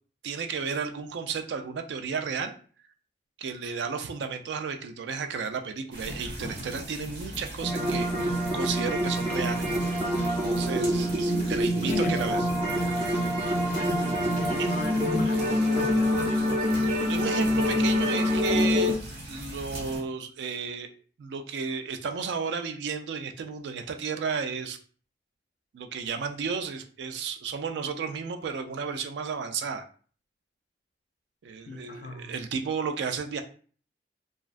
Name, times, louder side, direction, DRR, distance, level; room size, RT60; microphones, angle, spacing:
voice 1, 0.2-2.5 3.4-9.7 10.5-12.4 14.6-14.7 15.2-15.4 17.1-19.0 19.3-20.9 21.2-24.8 25.7-29.8 31.4-33.4, right 5 dB, 80° right, 0.3 m, -33 dB
sound 1, 5.9-20.0, right 1 dB, 60° right, 0.8 m, -40 dB
sound 2, 7.6-18.9, equal, 35° right, 0.6 m, -26 dB
voice 2, 11.8-12.4 13.7-16.6 31.7-32.5, left 4 dB, 45° left, 0.3 m, -36 dB
2.4 x 2.2 x 2.4 m
head